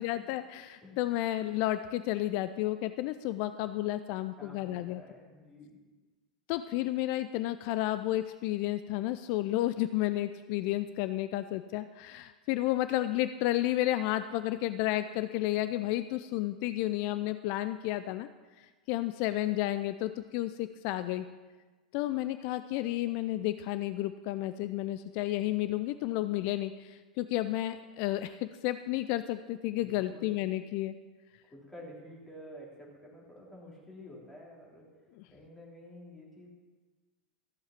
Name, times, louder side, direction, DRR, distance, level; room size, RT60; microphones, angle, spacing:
voice 1, 0.0-5.0 6.5-18.3 18.6-21.3 21.9-30.9, left 15 dB, 50° left, 12 dB, 0.4 m, -32 dB
voice 2, 4.4-5.8 29.8-30.4 31.4-34.9 35.3-36.5, equal, 10° left, -4 dB, 3.4 m, -50 dB
14.5 x 7.3 x 5.8 m, 1.3 s
figure-of-eight pair, 85°, 3 cm